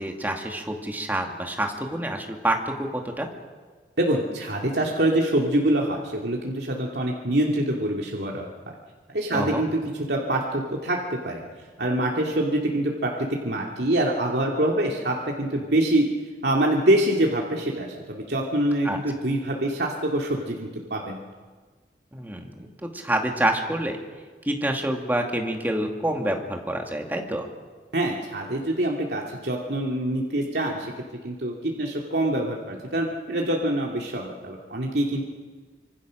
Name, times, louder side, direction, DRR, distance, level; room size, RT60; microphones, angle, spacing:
voice 1, 0.0-3.3 9.3-9.6 18.8-19.0 22.1-24.0 24.4-27.5, right 1 dB, 10° right, 2 dB, 2.4 m, -27 dB
voice 2, 4.0-8.5 9.1-11.4 11.8-16.1 16.4-21.2 27.9-30.9 31.2-35.2, right 1 dB, 70° right, -1 dB, 2.5 m, -25 dB
26.0 x 25.5 x 6.4 m, 1.5 s
head